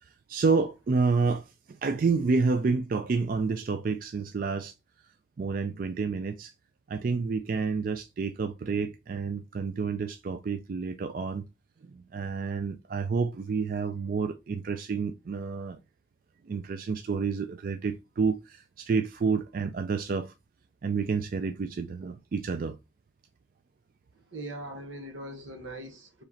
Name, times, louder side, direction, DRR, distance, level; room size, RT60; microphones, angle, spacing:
voice 1, 0.0-4.7 5.4-6.5 6.9-11.4 11.8-15.8 16.5-20.3 20.8-22.8, right 4 dB, 45° right, 0.3 m, -29 dB
voice 2, 24.3-26.2, right 1 dB, 80° right, 1.1 m, -40 dB
4.8 x 3.1 x 2.7 m
head